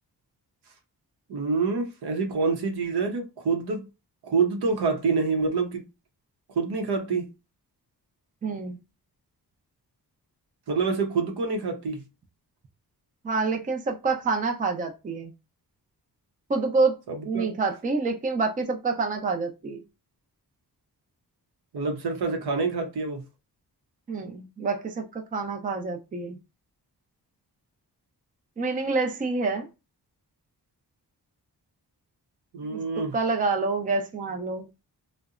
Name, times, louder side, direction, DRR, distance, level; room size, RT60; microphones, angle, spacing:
voice 1, 1.3-3.9 4.2-5.8 6.5-7.3 10.7-12.0 17.1-17.5 21.7-23.2 32.5-33.2, right 4 dB, 80° right, 0.7 m, -27 dB
voice 2, 8.4-8.8 13.2-15.3 16.5-17.0 17.3-19.8 24.1-26.4 28.6-29.7 32.7-32.8 33.1-34.7, right 3 dB, 20° right, 0.4 m, -27 dB
2.7 x 2.1 x 2.4 m
wide cardioid pair, 115°, 39 cm